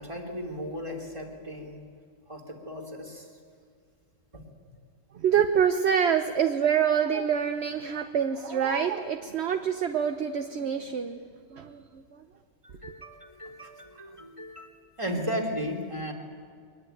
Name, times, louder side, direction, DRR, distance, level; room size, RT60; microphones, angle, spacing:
voice 1, 0.0-1.8 2.3-3.2 4.3-4.4 12.6-14.7 15.0-16.1, equal, 15° right, 1 dB, 3.1 m, -35 dB
voice 2, 5.1-12.2, right 8 dB, 50° right, 7 dB, 0.9 m, -26 dB
23.0 x 21.0 x 9.1 m, 2.1 s
omnidirectional pair, 1.8 m